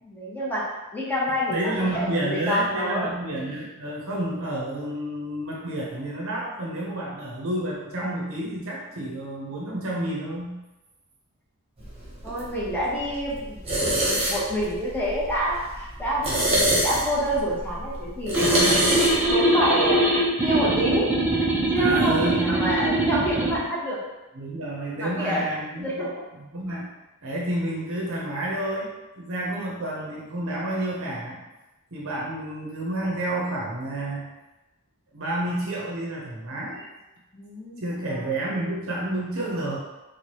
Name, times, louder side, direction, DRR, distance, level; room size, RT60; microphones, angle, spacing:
voice 1, 0.0-0.6 0.9-3.1 12.2-18.6 19.3-20.0 20.4-21.2 21.7-24.0 25.0-25.5 25.8-26.1 37.3-37.8 38.1-38.2, equal, 10° left, -7 dB, 1.0 m, -27 dB
voice 2, 1.3-10.6 18.4-19.1 21.8-22.6 24.3-26.1 26.5-26.9 27.2-31.4 31.9-34.3 35.1-36.9 37.8-39.8, right 1 dB, 65° right, -3 dB, 0.8 m, -30 dB
sound 1, 11.8-19.4, right 1 dB, 25° right, 1.0 m, -27 dB
sound 2, 18.3-23.6, right 1 dB, 5° right, 0.6 m, -22 dB
4.5 x 2.3 x 2.9 m, 1.0 s
head